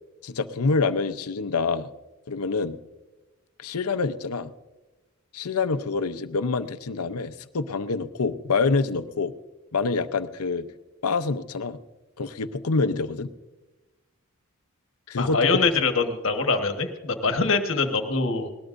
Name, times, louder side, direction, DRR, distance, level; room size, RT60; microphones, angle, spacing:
voice 1, 0.2-1.9 2.3-2.8 3.6-4.5 5.3-9.3 9.7-10.7 11.0-11.8 12.2-13.3 15.1-15.7, left 4 dB, 90° left, 11 dB, 0.7 m, -26 dB
voice 2, 15.2-18.5, left 4 dB, 60° left, 6 dB, 1.4 m, -24 dB
20.5 x 18.5 x 2.6 m, 1.1 s
head